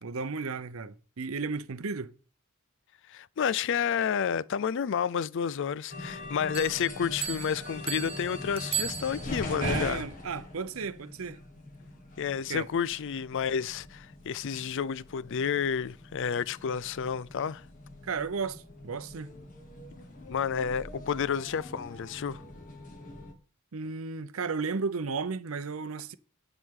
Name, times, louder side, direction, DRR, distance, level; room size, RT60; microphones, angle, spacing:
voice 1, 0.0-2.1 9.5-11.4 12.5-12.6 18.0-19.3 23.7-26.2, right 5 dB, 70° right, 0.7 m, -34 dB
voice 2, 3.1-10.0 12.2-17.6 20.3-22.4, left 7 dB, 60° left, 0.4 m, -30 dB
sound 1, 5.9-23.3, left 2 dB, 40° left, 1.7 m, -42 dB
Bell, 6.5-9.6, right 10 dB, 25° right, 0.4 m, -37 dB
10.5 x 8.1 x 3.7 m
head